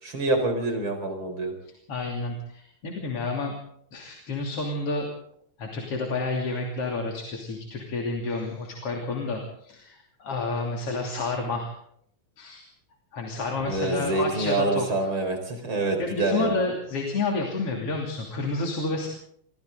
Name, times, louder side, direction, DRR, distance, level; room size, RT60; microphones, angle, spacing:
voice 1, 0.0-1.5 13.6-16.6, right 2 dB, 45° right, 5 dB, 5.3 m, -26 dB
voice 2, 1.9-3.5 3.9-5.1 5.6-11.7 12.4-12.7 13.1-15.1 16.0-19.1, left 3 dB, 55° left, 0 dB, 3.9 m, -30 dB
28.0 x 24.0 x 3.9 m, 0.68 s
omnidirectional pair, 3.3 m